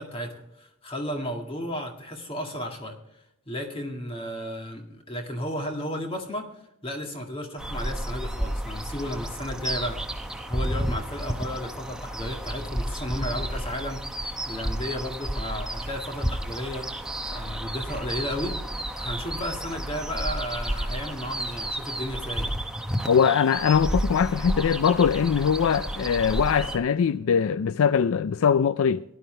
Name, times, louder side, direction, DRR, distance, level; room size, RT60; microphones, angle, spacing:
voice 1, 0.0-3.0 3.5-6.5 6.8-14.0 14.5-16.9 17.3-18.6 19.0-22.5, equal, 25° left, 2.0 m, -33 dB
sound 1, 7.6-26.8, right 1 dB, 5° right, 0.7 m, -31 dB
voice 2, 23.1-29.0, left 7 dB, 70° left, 0.4 m, -22 dB
17.0 x 11.0 x 3.3 m
head